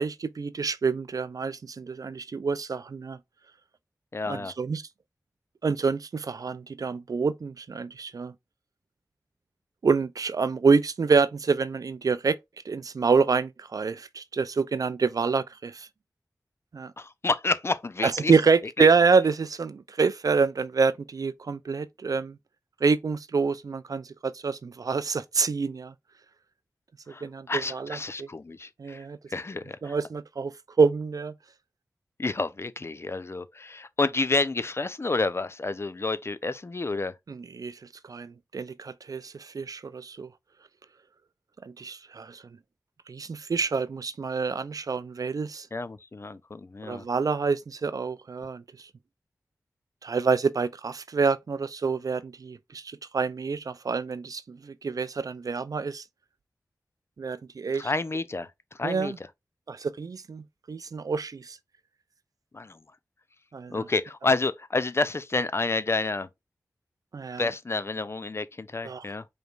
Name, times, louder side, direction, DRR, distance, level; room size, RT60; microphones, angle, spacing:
voice 1, 0.0-3.2 4.3-4.8 5.6-8.3 9.8-12.4 12.7-15.9 16.7-16.9 18.0-22.4 22.8-25.9 27.2-28.3 28.8-29.2 29.8-30.5 30.8-31.3 37.3-37.8 38.1-40.3 41.6-42.4 43.1-45.7 46.8-48.6 50.0-56.0 57.2-57.9 58.8-59.2 59.7-61.6 63.5-63.8 67.1-67.4 68.8-69.0, right 5 dB, 65° right, 0.4 m, -27 dB
voice 2, 4.1-4.5 17.0-18.3 18.8-18.9 27.1-30.0 32.2-37.1 45.7-47.1 57.7-59.1 62.5-62.8 63.7-66.3 67.4-69.3, left 3 dB, 40° left, 0.5 m, -29 dB
5.0 x 3.2 x 2.4 m
cardioid pair, 45°, 7 cm